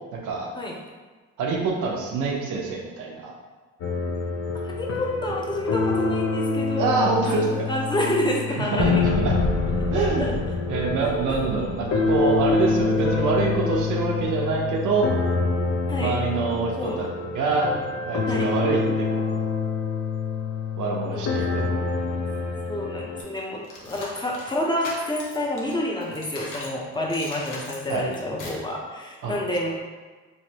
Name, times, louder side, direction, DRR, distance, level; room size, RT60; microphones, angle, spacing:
voice 1, 1.4-3.3 6.8-7.5 8.0-8.2 8.5-9.4 9.9-10.3 10.7-15.1 16.0-17.1 17.3-17.7 18.1-19.4 20.8-21.6 27.9-28.0 29.2-29.3, right 4 dB, 75° right, -1 dB, 0.7 m, -25 dB
sound 1, 3.8-23.2, left 4 dB, 60° left, 0.5 m, -26 dB
voice 2, 4.6-7.1 7.4-9.0 9.9-10.3 15.9-16.1 16.8-17.0 18.3-18.5 21.1-21.4 22.7-29.8, left 1 dB, 15° left, -2 dB, 0.6 m, -28 dB
sound 2, 23.2-26.8 27.1-28.7, left 2 dB, 85° left, 0.8 m, -39 dB
3.2 x 2.6 x 2.8 m, 1.3 s
cardioid pair, 90°, 30 cm